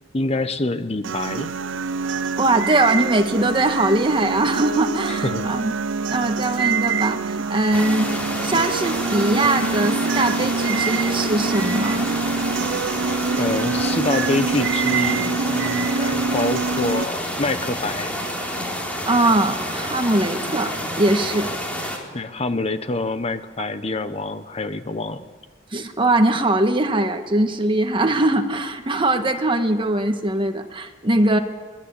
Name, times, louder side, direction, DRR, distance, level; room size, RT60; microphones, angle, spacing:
voice 1, 0.1-1.5 5.1-5.5 13.4-18.1 22.1-25.3, left 2 dB, 35° left, 11 dB, 1.0 m, -26 dB
sound 1, 1.0-17.1, right 4 dB, 85° right, 0.6 m, -25 dB
voice 2, 2.4-5.7 6.1-8.1 8.4-12.1 19.0-21.5 25.7-31.4, right 2 dB, 25° right, 6 dB, 1.7 m, -21 dB
sound 2, 7.7-22.0, equal, 10° left, 4.0 m, -29 dB
23.5 x 21.5 x 8.4 m, 1.4 s
head